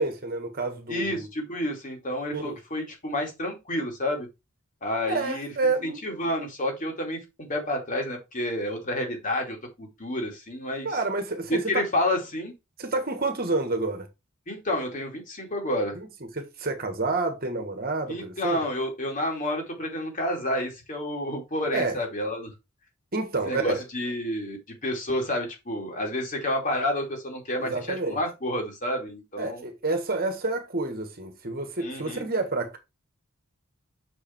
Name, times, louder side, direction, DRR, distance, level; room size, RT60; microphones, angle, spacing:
voice 1, 0.0-1.3 2.3-2.6 5.1-6.0 10.8-11.8 12.8-14.1 15.9-16.1 16.3-18.6 21.7-22.0 23.1-23.8 27.6-28.2 29.4-32.8, right 3 dB, 45° right, 1.5 m, -29 dB
voice 2, 0.9-4.3 4.8-5.5 5.8-11.0 11.5-12.5 14.5-16.0 18.1-22.5 23.4-24.6 24.8-29.6 31.8-32.2, left 1 dB, 35° left, 2.6 m, -30 dB
6.5 x 4.9 x 4.5 m
head